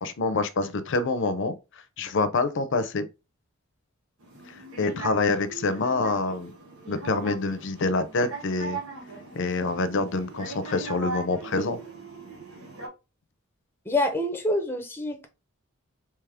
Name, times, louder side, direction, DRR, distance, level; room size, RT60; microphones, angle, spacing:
voice 1, 0.0-3.1 4.5-6.5 6.9-8.8 9.3-11.8, left 3 dB, 60° left, 0.6 m, -26 dB
sound 1, 4.2-12.9, right 3 dB, 85° right, 1.2 m, -39 dB
voice 2, 13.9-15.3, left 1 dB, 10° left, 0.7 m, -26 dB
3.4 x 3.1 x 3.5 m
head